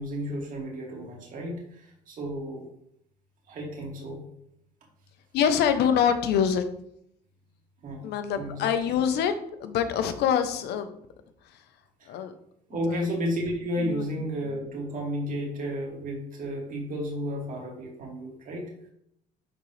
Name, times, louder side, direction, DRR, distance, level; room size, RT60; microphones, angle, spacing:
voice 1, 0.0-2.7 3.5-4.2 7.8-8.1 8.4-8.7 12.0-12.2 12.7-18.7, equal, 55° right, -1 dB, 2.5 m, -32 dB
voice 2, 5.3-6.6 8.0-9.3 9.6-10.9 12.1-12.3 12.9-13.0 13.8-14.1, left 8 dB, 80° left, 9 dB, 0.9 m, -25 dB
11.0 x 3.9 x 3.3 m, 0.73 s
cardioid pair, 110°, 17 cm